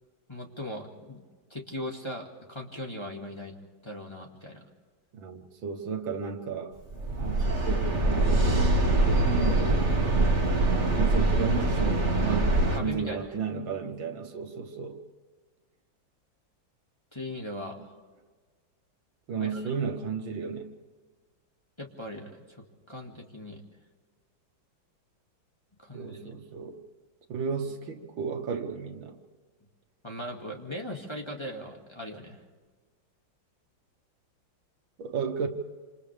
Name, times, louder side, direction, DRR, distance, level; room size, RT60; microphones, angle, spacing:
voice 1, 0.3-1.2 1.5-3.5 3.8-4.6 12.8-13.3 17.1-18.0 19.3-19.7 21.8-23.6 25.8-26.3 30.0-32.4, left 1 dB, 15° left, -1 dB, 2.1 m, -39 dB
voice 2, 5.1-6.7 7.2-10.0 11.0-15.0 19.3-20.7 25.9-26.8 27.3-29.2 35.0-35.5, right 6 dB, 85° right, 5 dB, 2.3 m, -33 dB
sound 1, 6.9-12.8, right 2 dB, 35° right, 2.3 m, -24 dB
28.0 x 27.0 x 3.5 m, 1.4 s
omnidirectional pair, 2.1 m